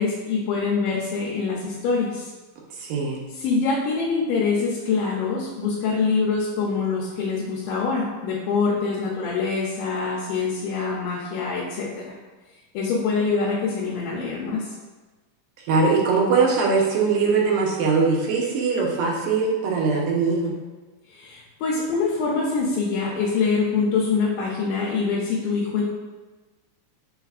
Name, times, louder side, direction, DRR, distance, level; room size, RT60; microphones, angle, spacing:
voice 1, 0.0-2.3 3.3-12.2 12.7-14.7 21.1-25.8, left 4 dB, 80° left, -4 dB, 2.3 m, -24 dB
voice 2, 2.8-3.3 15.7-20.5, right 4 dB, 85° right, -1 dB, 2.5 m, -21 dB
5.7 x 3.9 x 2.4 m, 1.2 s
omnidirectional pair, 3.8 m